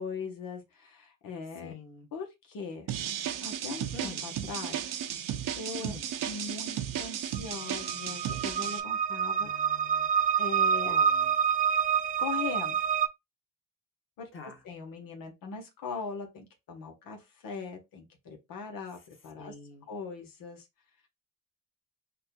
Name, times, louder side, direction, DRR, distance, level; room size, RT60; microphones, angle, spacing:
voice 1, 0.0-1.7 2.1-2.9 3.4-5.0 5.5-5.9 6.2-9.5 10.4-11.0 12.2-12.8 14.2-19.5 19.9-20.7, left 5 dB, 80° left, 1.3 m, -40 dB
voice 2, 1.6-2.1 3.9-4.2 5.8-6.1 9.4-10.1 10.8-11.3 14.3-14.6 19.4-19.9, left 4 dB, 35° left, 1.6 m, -46 dB
sound 1, 2.9-8.8, right 10 dB, 75° right, 0.7 m, -34 dB
sound 2, 7.3-13.1, right 7 dB, 25° right, 0.4 m, -27 dB
6.4 x 2.6 x 2.3 m
cardioid pair, 105°, 33 cm